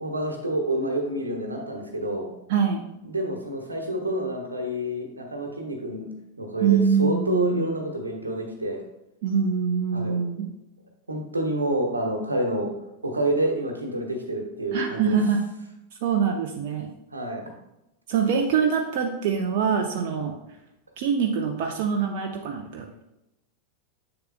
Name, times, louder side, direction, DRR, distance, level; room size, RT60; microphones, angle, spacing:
voice 1, 0.0-2.3 3.0-6.1 6.4-8.8 9.9-10.2 11.1-12.7 13.0-15.2 17.1-17.5 20.1-20.2, right 1 dB, 80° right, 2 dB, 1.1 m, -28 dB
voice 2, 2.5-2.8 6.6-7.7 9.2-10.5 14.7-15.4 16.0-16.9 18.1-20.3 21.0-23.0, right 6 dB, 50° right, 2 dB, 0.6 m, -24 dB
7.8 x 6.7 x 2.2 m, 0.89 s
figure-of-eight pair, 90°, 0 cm